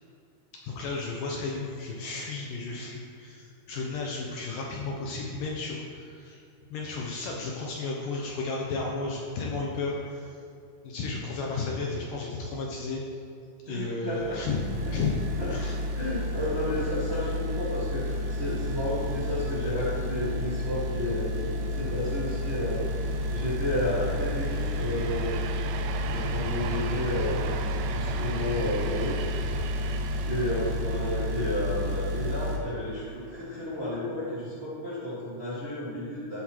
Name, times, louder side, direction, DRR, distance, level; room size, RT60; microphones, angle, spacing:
voice 1, 0.6-6.4 6.7-10.4 10.8-13.0 13.7-14.6 14.9-15.2 15.5-15.8, left 3 dB, 75° left, -2 dB, 2.2 m, -33 dB
voice 2, 13.7-14.4 15.4-15.5 15.9-25.4 26.1-27.4 27.9-29.2 30.2-36.4, left 1 dB, 25° right, -9 dB, 1.3 m, -32 dB
sound 1, 14.1-32.6, left 1 dB, 70° right, 2.7 m, -31 dB
sound 2, 22.1-34.0, right 6 dB, 90° right, 2.7 m, -40 dB
13.5 x 7.6 x 3.2 m, 2.5 s
omnidirectional pair, 4.6 m